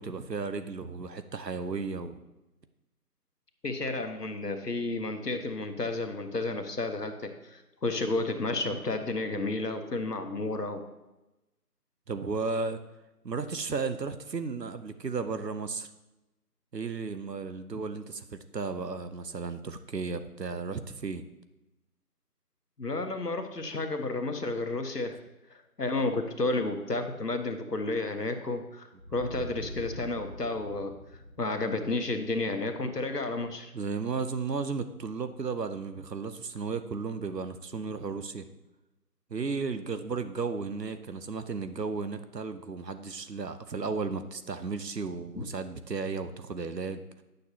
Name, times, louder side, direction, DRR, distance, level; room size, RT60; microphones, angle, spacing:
voice 1, 0.0-2.2 12.1-12.8 13.2-15.9 16.7-21.2 26.0-26.2 33.7-38.5 39.3-47.2, right 4 dB, 85° right, 10 dB, 0.8 m, -34 dB
voice 2, 3.6-10.8 22.8-25.2 25.5-30.9 31.4-33.7 45.4-45.5, left 2 dB, 75° left, 6 dB, 1.1 m, -32 dB
sound 1, 29.0-33.6, equal, 45° right, 0.8 m, -45 dB
9.5 x 6.6 x 2.9 m, 1.0 s
figure-of-eight pair, 180°, 48 cm